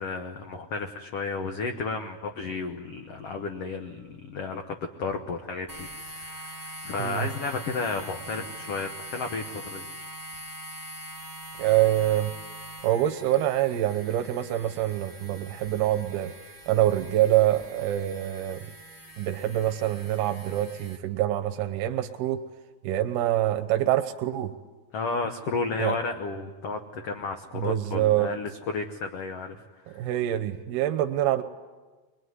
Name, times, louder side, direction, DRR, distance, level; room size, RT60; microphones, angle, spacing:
voice 1, 0.0-9.9 24.9-29.6 29.9-30.0, left 4 dB, 75° left, 5 dB, 1.4 m, -33 dB
sound 1, 5.7-21.0, right 1 dB, 20° right, 0.6 m, -43 dB
voice 2, 11.6-12.3 12.8-16.3 16.7-18.6 19.2-22.4 22.8-24.5 25.8-25.9 27.5-28.3 29.9-31.4, right 13 dB, 80° right, 7 dB, 2.8 m, -25 dB
23.0 x 21.5 x 9.6 m, 1.3 s
omnidirectional pair, 4.4 m